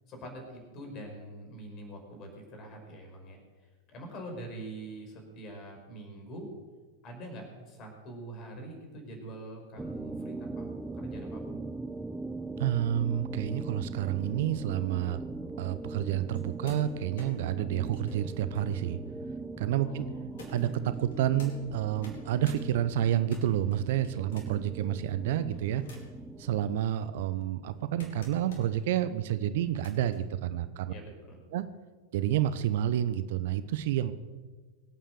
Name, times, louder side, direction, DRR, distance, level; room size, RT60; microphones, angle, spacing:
voice 1, 0.1-6.5 7.0-11.6 19.7-20.7 30.9-31.4, right 1 dB, 35° left, 3 dB, 5.2 m, -45 dB
sound 1, 9.8-26.8, right 2 dB, 5° right, 0.7 m, -41 dB
voice 2, 12.6-15.2 15.6-19.0 19.6-20.1 20.5-25.8 26.4-30.9 31.5-31.6 32.1-34.1, right 11 dB, 55° right, 13 dB, 0.8 m, -29 dB
sound 2, 16.3-19.6 20.4-21.5 21.9-22.6 23.0-24.7 25.3-26.2 26.8-28.8 29.5-30.2 31.3-31.4, left 2 dB, 60° left, 4.4 m, -52 dB
23.5 x 9.1 x 6.6 m, 1.4 s
figure-of-eight pair, 90°, 0 cm